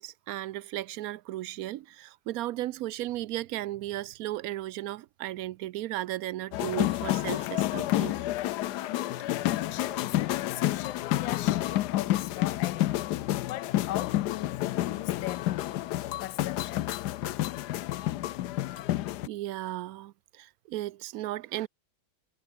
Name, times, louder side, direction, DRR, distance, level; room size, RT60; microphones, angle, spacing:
voice 1, 0.0-8.1 19.3-21.7, right 15 dB, 75° right, 0.8 m, -35 dB
sound 1, 6.5-19.3, left 15 dB, 70° left, 1.1 m, -29 dB
sound 2, 8.3-15.5, right 2 dB, 20° right, 3.6 m, -58 dB
voice 2, 8.8-13.1 13.4-17.0, left 15 dB, 90° left, 1.4 m, -40 dB
omnidirectional pair, 2.0 m